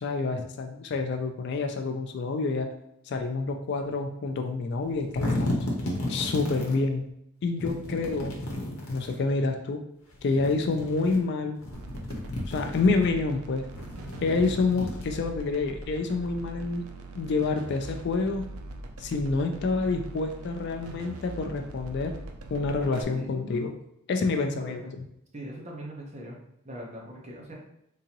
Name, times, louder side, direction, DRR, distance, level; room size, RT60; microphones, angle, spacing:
voice 1, 0.0-2.8 3.1-5.7 6.1-7.1 7.4-8.4 8.9-9.8 10.2-11.6 12.5-13.7 14.2-16.8 17.2-18.5 19.0-22.1 22.5-23.7 24.1-24.8, left 3 dB, 50° left, 5 dB, 0.3 m, -28 dB
sound 1, 4.8-6.8 7.6-9.2 10.1-11.2 11.6-13.1 13.6-15.4, left 1 dB, 70° left, 0.9 m, -33 dB
sound 2, 11.7-23.0, right 2 dB, 75° right, 0.5 m, -42 dB
voice 2, 24.2-24.8 25.3-26.4 26.6-27.5, right 1 dB, 30° right, -3 dB, 0.8 m, -41 dB
3.7 x 2.7 x 2.9 m, 0.78 s
head